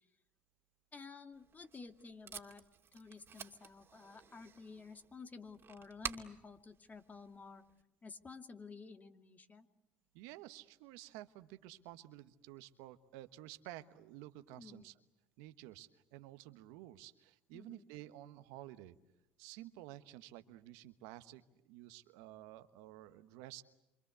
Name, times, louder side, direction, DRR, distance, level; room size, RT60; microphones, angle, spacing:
voice 1, 0.9-2.6 2.9-7.6 8.0-9.7 14.6-14.9 17.5-17.9, left 4 dB, 30° left, 7 dB, 2.5 m, -52 dB
Packing tape duct tape, 1.3-7.8, right 7 dB, 45° right, 2.6 m, -51 dB
voice 2, 10.1-15.0 15.4-19.0 19.4-23.6, right 15 dB, 75° right, 11 dB, 1.3 m, -52 dB
27.5 x 26.0 x 8.2 m, 0.92 s
hypercardioid pair, 70°, 6 cm